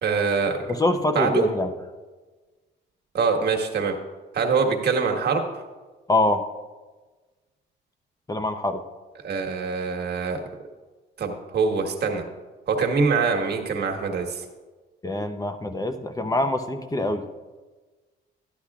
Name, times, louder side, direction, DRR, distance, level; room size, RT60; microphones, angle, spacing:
voice 1, 0.0-0.7 1.1-1.4 3.1-4.0 4.3-5.5 9.2-10.4 11.2-12.2 12.7-14.5, right 5 dB, 55° right, 2 dB, 1.4 m, -24 dB
voice 2, 0.7-1.7 6.1-6.4 8.3-8.8 15.0-17.2, left 2 dB, 20° left, 7 dB, 0.7 m, -24 dB
13.0 x 10.0 x 2.4 m, 1.3 s
cardioid pair, 90°, 20 cm